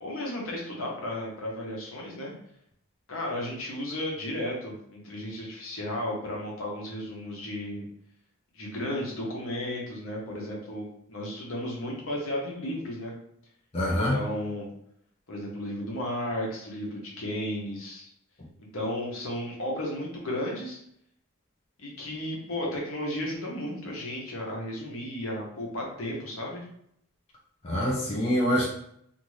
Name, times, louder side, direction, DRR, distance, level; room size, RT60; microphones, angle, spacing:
voice 1, 0.0-2.3 3.1-7.8 8.5-13.1 14.1-14.7 15.3-18.1 18.6-20.8 21.8-26.6, left 1 dB, 70° left, -2 dB, 0.9 m, -34 dB
voice 2, 13.7-14.2 27.6-28.7, equal, 30° left, -4 dB, 0.5 m, -25 dB
2.6 x 2.5 x 3.1 m, 0.71 s
head